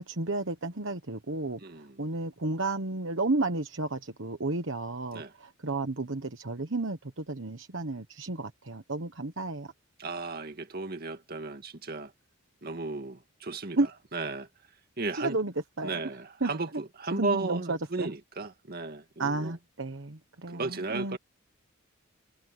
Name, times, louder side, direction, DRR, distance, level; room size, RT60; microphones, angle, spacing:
voice 1, 0.0-9.7 13.8-13.9 15.1-15.5 15.8-16.0 16.4-16.5 17.1-18.1 19.2-21.2, right 2 dB, 60° right, 1.3 m, -32 dB
voice 2, 1.6-2.1 5.1-5.3 10.0-12.1 12.6-14.5 15.0-15.4 15.8-19.6 20.5-21.2, right 3 dB, 45° right, 2.2 m, -35 dB
head